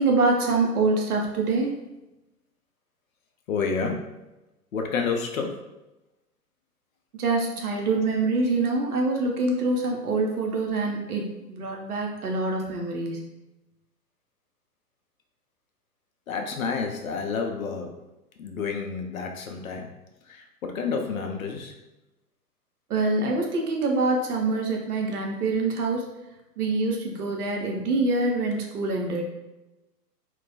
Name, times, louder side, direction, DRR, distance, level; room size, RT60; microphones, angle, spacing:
voice 1, 0.0-1.7 7.2-13.2 22.9-26.1 26.6-29.2, right 3 dB, 65° right, 1 dB, 0.8 m, -25 dB
voice 2, 3.5-4.1 4.7-5.6 16.3-17.9 18.4-19.9 20.3-21.7, left 5 dB, 55° left, 3 dB, 0.6 m, -29 dB
2.3 x 2.1 x 3.9 m, 1.0 s
figure-of-eight pair, 115°, 49 cm